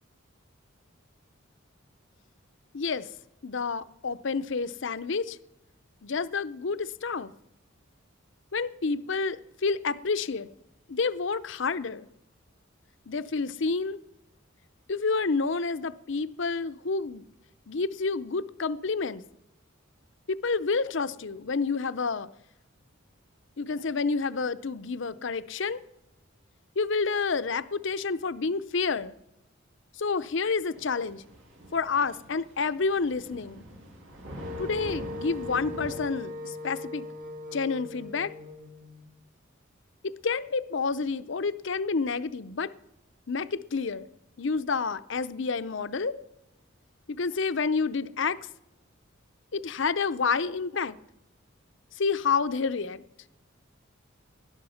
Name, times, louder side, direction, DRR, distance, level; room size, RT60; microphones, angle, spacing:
voice 1, 2.7-3.0 3.4-5.4 6.0-7.3 8.5-10.5 10.9-12.0 13.1-14.0 14.9-17.2 17.7-19.2 20.3-22.3 23.6-25.8 26.8-29.1 30.0-31.2 31.7-33.6 34.6-37.1 37.5-38.3 40.0-42.7 43.3-44.1 44.4-46.2 47.1-48.4 49.5-51.0 52.0-53.0, left 4 dB, 60° left, 0.6 m, -29 dB
Thunder / Rain, 30.7-36.0, equal, 70° right, 6.5 m, -44 dB
Wind instrument woodwind instrument, 34.4-39.1, left 2 dB, 40° right, 1.7 m, -40 dB
20.0 x 11.5 x 5.7 m
head